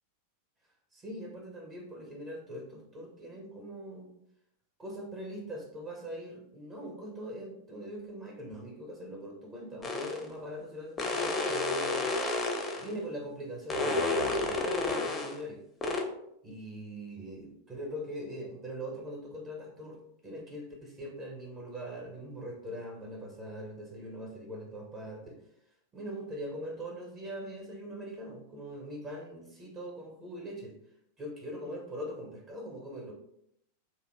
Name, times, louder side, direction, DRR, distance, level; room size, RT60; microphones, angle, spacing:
voice 1, 0.9-4.1 4.8-12.1 12.8-15.6 16.4-25.4 25.9-30.8 31.2-33.1, equal, 25° right, 0 dB, 0.7 m, -41 dB
sound 1, 9.8-10.2 11.0-12.9 13.7-15.4 15.8-16.0, left 3 dB, 20° left, 0.5 m, -30 dB
2.8 x 2.1 x 2.9 m, 0.77 s
figure-of-eight pair, 90°, 0 cm